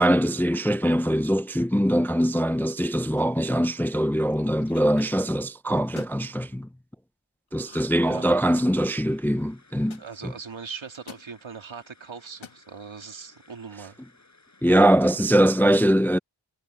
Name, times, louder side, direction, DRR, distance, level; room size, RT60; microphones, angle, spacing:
voice 1, 0.0-6.7 7.5-10.3 14.6-16.2, equal, 5° left, 0.3 m, -22 dB
sound 1, 3.2-3.5 4.3-5.0 5.8-6.2 7.6-8.0 8.3-8.9 9.9-10.0 10.9-11.3 12.3-12.6, left 6 dB, 85° left, 1.7 m, -47 dB
sound 2, 8.0-15.0, left 3 dB, 35° left, 7.5 m, -58 dB
voice 2, 10.0-14.0, right 6 dB, 80° right, 2.2 m, -40 dB
wide cardioid pair, 75°, 46 cm